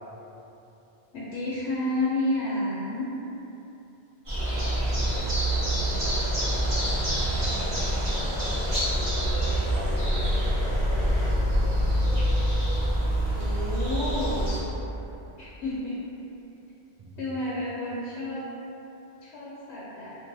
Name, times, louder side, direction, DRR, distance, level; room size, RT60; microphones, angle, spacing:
voice 1, 1.1-3.1 13.3-14.5 15.4-16.0 17.2-18.5 19.2-20.2, left 1 dB, 80° left, -7 dB, 0.8 m, -30 dB
sound 1, 4.3-11.3, equal, 5° left, 0.9 m, -38 dB
sound 2, 4.3-14.6, equal, 30° right, 0.9 m, -26 dB
voice 2, 4.5-8.7 9.7-12.4 17.0-17.2, right 1 dB, 50° right, -8 dB, 0.5 m, -42 dB
3.0 x 2.6 x 2.5 m, 3.0 s
omnidirectional pair, 1.1 m